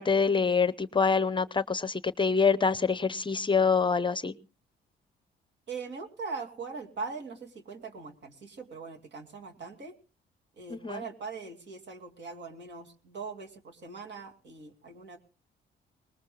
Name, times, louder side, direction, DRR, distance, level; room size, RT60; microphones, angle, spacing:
voice 1, 0.0-4.3 10.7-11.0, left 5 dB, 25° left, 15 dB, 0.7 m, -26 dB
voice 2, 5.7-9.9 10.6-15.2, right 4 dB, 60° right, 5 dB, 2.6 m, -41 dB
21.5 x 20.0 x 2.2 m, 0.35 s
cardioid pair, 90°, 20 cm